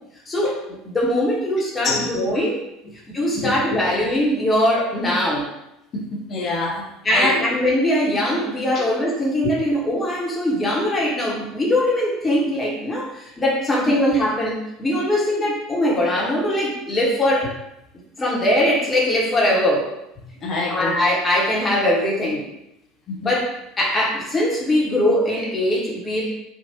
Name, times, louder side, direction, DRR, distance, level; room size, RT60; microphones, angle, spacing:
voice 1, 0.3-2.6 3.1-5.5 7.0-17.5 18.2-19.9 20.7-22.4 23.2-23.5 23.8-26.4, left 1 dB, 20° left, -4 dB, 1.1 m, -21 dB
voice 2, 3.3-3.8 5.9-7.5 8.7-8.8 9.4-9.5 13.9-14.0 20.4-21.0 23.1-23.3, left 3 dB, 40° left, 0 dB, 0.7 m, -27 dB
3.6 x 2.5 x 2.8 m, 0.83 s
figure-of-eight pair, 65°, 0 cm